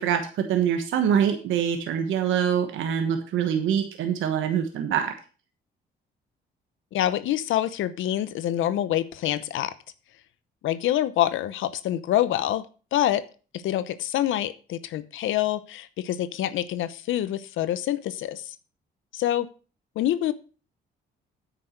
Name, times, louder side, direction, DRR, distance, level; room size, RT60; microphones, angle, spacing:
voice 1, 0.0-5.1, right 8 dB, 85° right, 6 dB, 1.3 m, -24 dB
voice 2, 6.9-9.7 10.6-12.7 12.9-13.2 13.5-18.5 19.1-19.5 20.0-20.3, left 12 dB, 80° left, 14 dB, 0.8 m, -26 dB
9.1 x 6.0 x 6.5 m, 0.37 s
cardioid pair, 90°, 20 cm